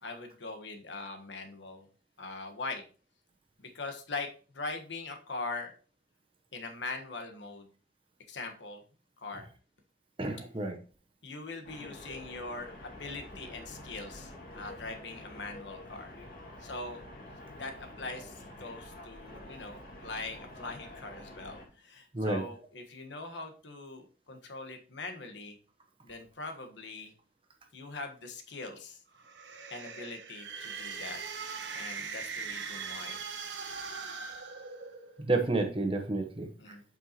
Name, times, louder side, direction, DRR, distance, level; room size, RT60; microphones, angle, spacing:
voice 1, 0.0-1.9 2.2-2.8 3.6-5.7 6.5-7.7 8.3-8.8 9.2-9.4 11.2-16.1 16.6-17.0 17.6-25.6 26.0-27.1 27.7-29.0 29.7-31.2 31.7-33.2 36.6-36.8, left 3 dB, 90° left, 5 dB, 1.3 m, -42 dB
voice 2, 10.2-10.8 22.1-22.4 35.3-36.5, right 2 dB, 30° right, 4 dB, 1.0 m, -30 dB
sound 1, 11.6-21.7, left 1 dB, 50° left, 2.1 m, -48 dB
sound 2, 29.1-35.2, right 5 dB, 85° right, 1.1 m, -40 dB
7.8 x 5.5 x 2.9 m, 0.38 s
head